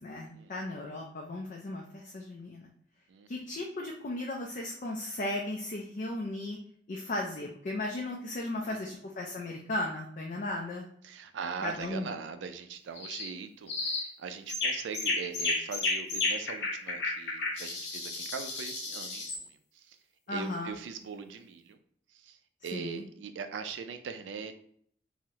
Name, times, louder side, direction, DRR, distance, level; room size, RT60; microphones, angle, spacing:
voice 1, 0.0-2.7 3.3-6.6 6.9-10.8 11.6-12.1 20.3-20.7 22.7-23.0, left 1 dB, 45° left, 0 dB, 0.4 m, -36 dB
voice 2, 11.0-20.0 20.3-21.8 22.1-24.5, right 6 dB, 90° right, 8 dB, 0.4 m, -41 dB
sound 1, 13.0-13.3 13.7-14.1 14.5-19.4, left 3 dB, 65° left, 0.8 m, -32 dB
3.7 x 2.1 x 2.8 m, 0.63 s
head